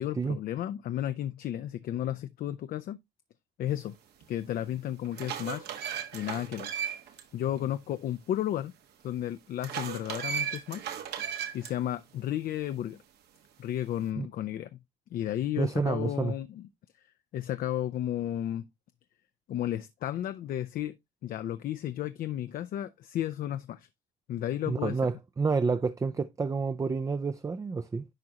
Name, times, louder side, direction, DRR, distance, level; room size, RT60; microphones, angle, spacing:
voice 1, 0.0-3.0 3.6-4.0 4.3-5.7 6.1-6.7 7.3-8.7 9.0-10.9 11.5-13.0 13.6-14.8 15.1-16.7 17.3-18.7 19.5-21.0 21.2-23.9 24.3-25.0, left 12 dB, 60° left, 0.5 m, -33 dB
sound 1, 4.2-4.3 4.9-7.2 7.6-7.7 9.6-11.7, right 8 dB, 75° right, 1.5 m, -35 dB
voice 2, 15.6-16.3 24.7-28.0, right 4 dB, 20° right, 0.4 m, -29 dB
10.5 x 3.7 x 2.8 m
cardioid pair, 110°, 17 cm